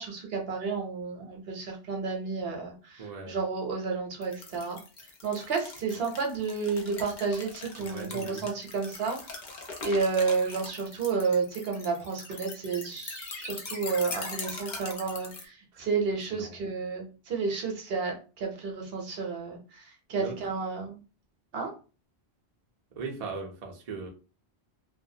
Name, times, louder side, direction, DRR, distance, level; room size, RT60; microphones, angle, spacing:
voice 1, 0.0-4.8 5.2-9.2 9.8-18.1 18.4-19.6 20.1-21.0 21.5-21.7, right 4 dB, 65° right, 2 dB, 0.9 m, -31 dB
voice 2, 3.0-3.4 7.8-8.5 15.7-15.9 16.3-16.6 20.2-20.4 23.0-24.1, right 4 dB, 45° right, 0 dB, 0.5 m, -39 dB
sound 1, 4.2-15.5, left 3 dB, 50° left, 0.7 m, -41 dB
2.4 x 2.1 x 2.7 m, 0.34 s
omnidirectional pair, 1.1 m